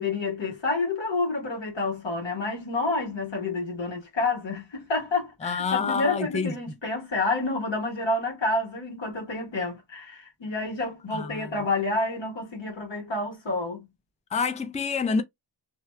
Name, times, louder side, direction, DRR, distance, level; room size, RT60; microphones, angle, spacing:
voice 1, 0.0-13.9, left 3 dB, 90° left, 1.6 m, -29 dB
voice 2, 5.4-6.5 11.1-11.5 14.3-15.2, left 5 dB, 15° left, 0.4 m, -27 dB
2.8 x 2.3 x 3.2 m
wide cardioid pair, 95°, 44 cm